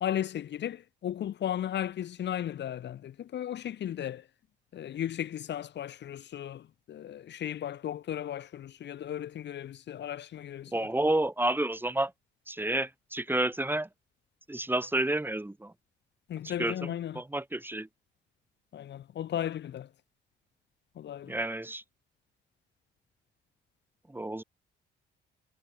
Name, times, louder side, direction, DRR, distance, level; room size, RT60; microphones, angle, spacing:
voice 1, 0.0-4.2 4.7-10.9 16.3-17.2 18.7-19.9 21.0-21.3, left 10 dB, 60° left, 1.1 m, -35 dB
voice 2, 10.7-12.1 12.5-13.9 14.5-15.7 16.4-17.9 21.3-21.8 24.1-24.4, right 1 dB, 10° right, 5.3 m, -30 dB
cardioid pair, 90°, 20 cm